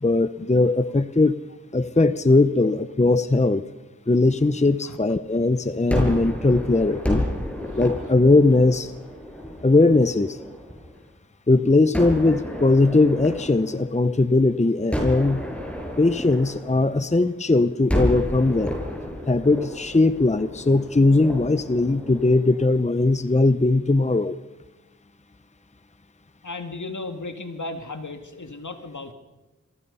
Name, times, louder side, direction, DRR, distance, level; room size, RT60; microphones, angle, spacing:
voice 1, 0.0-1.4 1.7-3.6 4.1-7.2 7.7-8.9 9.6-10.4 11.5-15.4 16.0-18.8 19.3-24.4, left 2 dB, 20° left, 13 dB, 0.8 m, -19 dB
Gunshot gunfire, 5.9-11.0 11.9-14.4 14.9-17.4 17.9-23.1, equal, 5° left, 7.2 m, -31 dB
voice 2, 26.4-29.1, left 2 dB, 60° left, 6 dB, 2.5 m, -35 dB
27.5 x 23.5 x 5.6 m, 1.1 s
wide cardioid pair, 45°, 33 cm